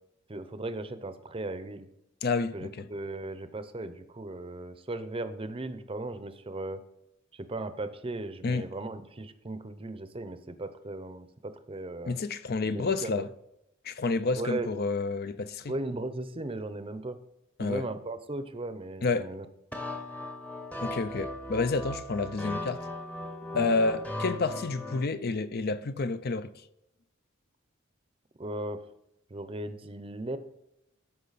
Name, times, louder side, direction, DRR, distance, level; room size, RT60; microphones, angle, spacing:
voice 1, 0.3-1.9 2.5-6.8 7.3-12.2 12.6-13.2 14.4-14.7 15.7-17.2 17.6-19.5 23.5-23.7 28.4-28.8 29.3-30.4, right 2 dB, 25° right, 0.7 m, -37 dB
voice 2, 2.2-2.9 8.4-8.6 12.1-13.3 13.8-15.7 17.6-17.9 19.0-19.3 20.8-22.9 23.5-26.5, left 3 dB, 50° left, 0.5 m, -29 dB
sound 1, 19.7-25.1, left 1 dB, 5° left, 0.9 m, -38 dB
13.5 x 5.5 x 4.1 m
head